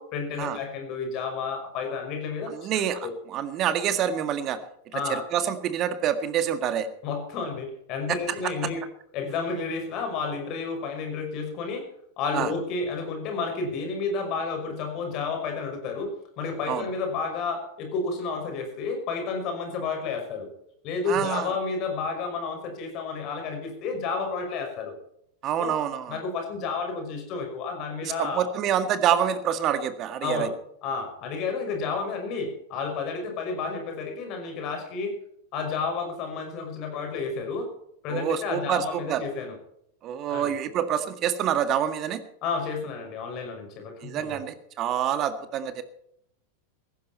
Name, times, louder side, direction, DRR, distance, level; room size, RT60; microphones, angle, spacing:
voice 1, 0.0-2.7 3.0-3.1 4.9-5.2 7.0-8.8 9.1-11.9 12.2-20.5 20.8-24.9 25.6-25.7 26.1-28.4 30.2-30.5 30.8-35.2 35.5-37.7 38.0-39.6 40.3-40.6 42.4-44.4, left 4 dB, 40° left, 4 dB, 5.8 m, -31 dB
voice 2, 2.5-4.6 4.9-6.9 8.1-8.5 12.3-12.5 16.7-16.8 21.1-21.5 25.4-26.2 28.0-30.5 38.1-39.2 40.0-42.2 44.0-45.8, right 9 dB, 35° right, 11 dB, 1.8 m, -27 dB
17.0 x 15.0 x 4.4 m, 0.73 s
figure-of-eight pair, 90°, 0 cm